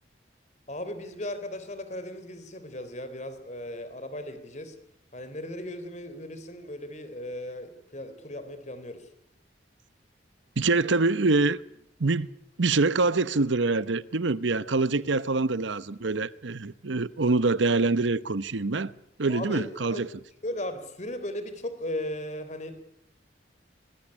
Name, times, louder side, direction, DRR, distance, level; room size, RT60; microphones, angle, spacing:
voice 1, 0.7-4.8 5.1-9.1 19.3-20.0 20.4-22.7, left 1 dB, 40° left, 3.5 m, -37 dB
voice 2, 10.6-11.6 12.0-12.3 12.6-18.9 19.2-20.1, right 3 dB, 85° right, 0.9 m, -25 dB
25.0 x 19.5 x 9.9 m
head